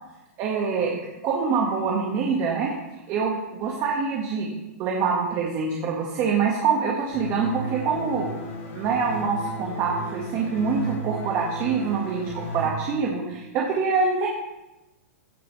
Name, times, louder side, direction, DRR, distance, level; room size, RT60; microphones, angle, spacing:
voice 1, 0.4-1.0 1.2-2.7 3.1-4.5 4.8-8.3 8.7-14.3, right 5 dB, 35° right, -1 dB, 1.5 m, -25 dB
sound 1, 7.1-12.7, equal, 65° left, 2.9 m, -34 dB
15.5 x 7.2 x 3.2 m, 0.99 s
hypercardioid pair, 135°, 8 cm